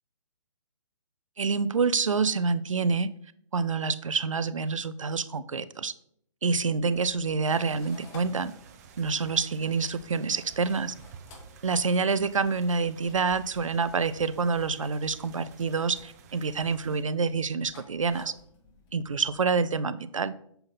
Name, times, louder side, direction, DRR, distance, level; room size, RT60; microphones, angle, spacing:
voice 1, 1.4-3.1 3.5-5.9 6.4-8.5 9.0-10.9 11.6-18.3 18.9-20.3, right 4 dB, 75° right, 15 dB, 0.5 m, -27 dB
sound 1, 6.7-19.4, left 2 dB, 20° left, 1.2 m, -55 dB
sound 2, 7.4-17.0, right 7 dB, 30° right, 0.8 m, -52 dB
6.8 x 5.7 x 4.1 m, 0.66 s
figure-of-eight pair, 140°, 16 cm